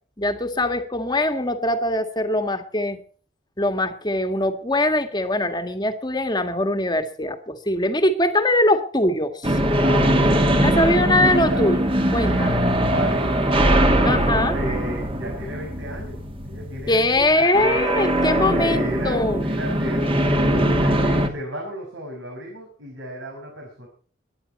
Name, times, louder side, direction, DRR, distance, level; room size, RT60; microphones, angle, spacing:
voice 1, 0.2-3.0 3.6-9.6 10.6-12.6 14.0-14.8 16.9-19.4, left 1 dB, 20° left, 7 dB, 1.8 m, -22 dB
sound 1, 9.4-21.3, right 1 dB, 30° right, 2.4 m, -21 dB
voice 2, 9.8-11.7 12.3-13.8 14.2-17.8 18.1-23.9, right 1 dB, 80° right, 1 dB, 5.9 m, -33 dB
23.0 x 10.5 x 4.3 m, 0.43 s
head